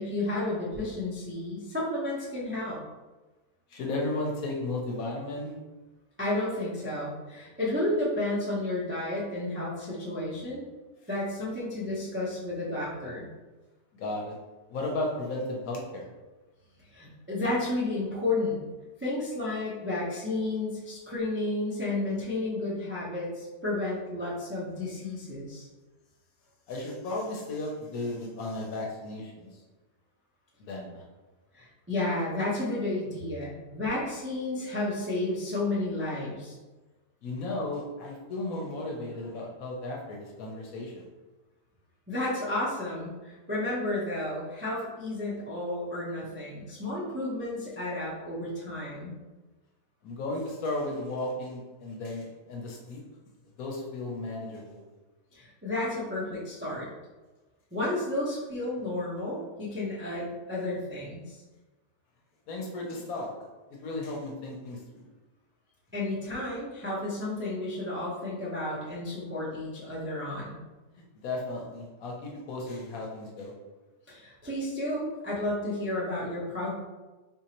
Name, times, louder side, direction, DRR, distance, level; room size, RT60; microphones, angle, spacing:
voice 1, 0.0-2.8 6.2-10.6 11.1-13.3 16.9-18.6 19.0-25.7 31.5-36.5 42.1-49.1 55.3-56.9 57.7-61.2 65.9-70.6 74.1-76.7, left 2 dB, 20° right, -7 dB, 0.3 m, -32 dB
voice 2, 3.7-5.5 14.0-14.4 14.7-16.1 22.0-22.1 26.7-29.6 30.6-31.0 37.2-41.1 50.0-53.0 53.6-54.8 62.5-63.3 63.7-65.1 71.1-73.5, left 2 dB, 65° left, -1 dB, 1.1 m, -34 dB
3.8 x 2.8 x 2.9 m, 1.2 s
omnidirectional pair, 1.7 m